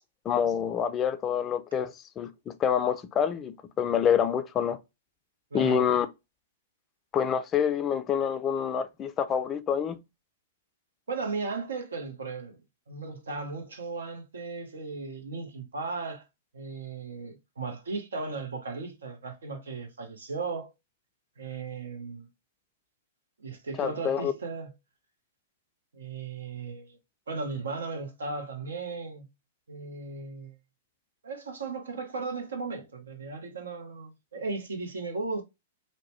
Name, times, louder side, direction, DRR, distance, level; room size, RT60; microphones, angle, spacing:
voice 1, 0.2-4.8 5.5-6.1 7.1-10.0 23.8-24.3, left 8 dB, 25° left, 0.4 m, -27 dB
voice 2, 5.5-5.9 11.1-12.6 12.9-16.2 16.5-20.7 21.4-22.3 23.4-24.7 25.9-27.0 27.3-29.3 29.7-30.6 31.2-35.4, right 4 dB, 75° right, 0.8 m, -36 dB
2.7 x 2.1 x 3.0 m
hypercardioid pair, 115°, 0 cm